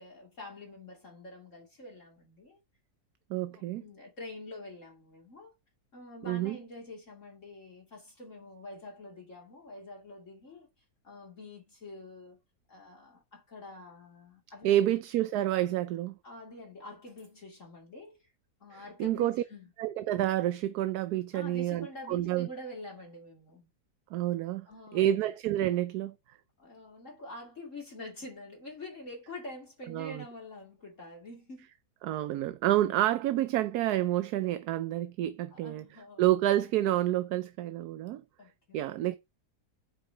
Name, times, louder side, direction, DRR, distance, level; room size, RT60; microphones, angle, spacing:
voice 1, 0.0-2.6 3.5-5.5 5.9-10.7 11.0-12.4 12.7-14.8 16.2-18.3 18.6-19.7 21.3-23.7 24.7-25.2 26.6-31.7 32.6-33.1 35.5-36.3 38.4-38.9, left 2 dB, 45° left, 2.9 m, -46 dB
voice 2, 3.3-3.8 6.3-6.6 14.6-16.2 18.7-19.4 19.8-22.5 24.1-24.7 24.9-26.1 29.9-30.2 32.0-35.8 36.2-38.2 38.7-39.2, right 13 dB, 75° right, 1.1 m, -29 dB
8.3 x 4.8 x 4.6 m
omnidirectional pair, 1.8 m